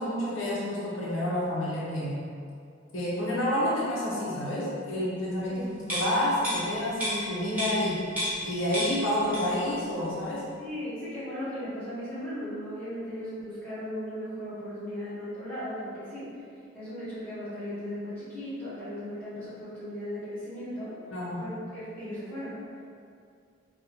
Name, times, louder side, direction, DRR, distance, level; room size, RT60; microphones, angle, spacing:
voice 1, 0.0-2.2 2.9-8.0 8.4-10.4 21.1-21.4, left 1 dB, 75° left, -6 dB, 0.6 m, -29 dB
sound 1, 5.8-8.5 8.7-9.7 10.0-10.2, equal, 10° right, 1.0 m, -32 dB
voice 2, 10.6-16.4 16.7-21.0 21.4-22.6, equal, 10° left, -14 dB, 1.4 m, -37 dB
3.8 x 2.0 x 2.9 m, 2.4 s
head